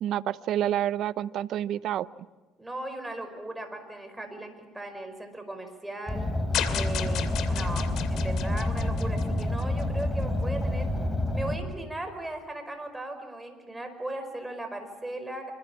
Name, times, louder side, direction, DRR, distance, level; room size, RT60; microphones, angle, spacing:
voice 1, 0.0-2.1, right 11 dB, 60° right, 17 dB, 0.7 m, -28 dB
voice 2, 2.6-6.3 6.7-10.9 11.3-15.5, right 1 dB, 10° right, 6 dB, 5.2 m, -37 dB
Car, 6.1-11.6, left 1 dB, 10° left, 3.9 m, -28 dB
sound 1, 6.5-9.8, left 10 dB, 65° left, 2.6 m, -34 dB
26.0 x 25.5 x 7.3 m, 1.2 s
cardioid pair, 110°, 0 cm